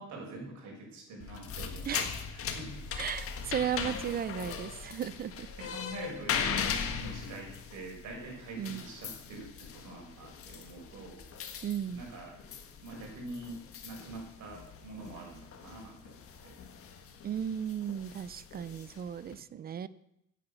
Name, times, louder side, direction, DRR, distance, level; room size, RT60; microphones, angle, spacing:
voice 1, 0.0-2.9 5.6-11.3 11.9-12.4 12.8-16.5, right 2 dB, 55° right, 0 dB, 6.1 m, -45 dB
sound 1, 1.2-19.3, left 7 dB, 40° left, 1.6 m, -40 dB
voice 2, 3.0-5.5 8.6-8.8 11.6-12.0 17.2-19.9, right 9 dB, 30° right, 17 dB, 0.5 m, -35 dB
16.0 x 9.4 x 6.9 m, 0.79 s
cardioid pair, 175°, 33 cm